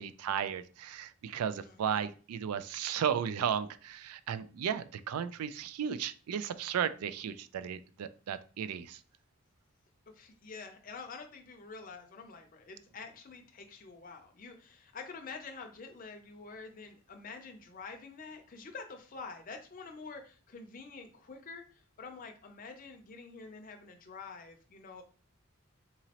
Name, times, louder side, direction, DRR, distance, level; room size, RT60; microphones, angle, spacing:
voice 1, 0.0-9.0, right 8 dB, 85° right, 14 dB, 0.3 m, -35 dB
voice 2, 1.6-2.0 10.1-21.6 22.0-25.0, left 4 dB, 40° left, 5 dB, 0.5 m, -47 dB
3.7 x 3.0 x 2.8 m, 0.39 s
head